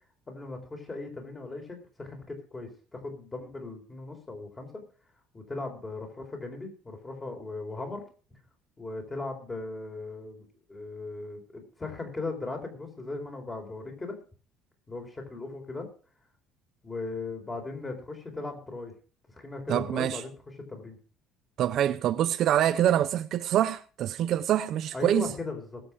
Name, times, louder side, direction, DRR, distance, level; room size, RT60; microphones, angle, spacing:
voice 1, 0.3-4.8 5.3-8.0 8.3-8.4 8.8-14.2 14.9-15.9 16.8-18.9 19.3-20.3 20.7-21.0 24.9-25.8, left 3 dB, 15° left, 4.2 m, -38 dB
voice 2, 19.7-20.2 21.6-25.3, right 11 dB, 50° right, 0.6 m, -25 dB
20.0 x 7.9 x 4.8 m
cardioid pair, 150°, 0 cm